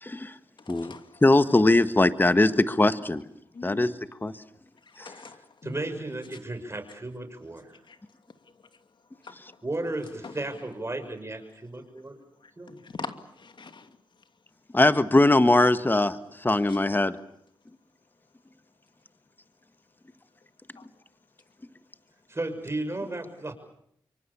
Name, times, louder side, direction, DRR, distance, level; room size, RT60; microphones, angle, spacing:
voice 1, 0.0-0.3 0.7-0.9 1.2-3.2 3.6-3.9 4.2-4.3 5.0-5.1 14.7-17.2, left 2 dB, 20° left, 11 dB, 1.6 m, -21 dB
voice 2, 0.7-1.4 3.5-3.9 4.9-5.8 7.9-8.0 9.2-9.6 10.2-10.4 12.7-13.9 16.7-16.8 20.8-20.9, left 4 dB, 60° left, 8 dB, 2.6 m, -42 dB
voice 3, 5.0-7.7 9.6-12.2 12.6-12.8 22.3-23.5, right 2 dB, 30° right, 7 dB, 6.5 m, -34 dB
26.5 x 24.5 x 7.3 m, 0.72 s
cardioid pair, 50°, 9 cm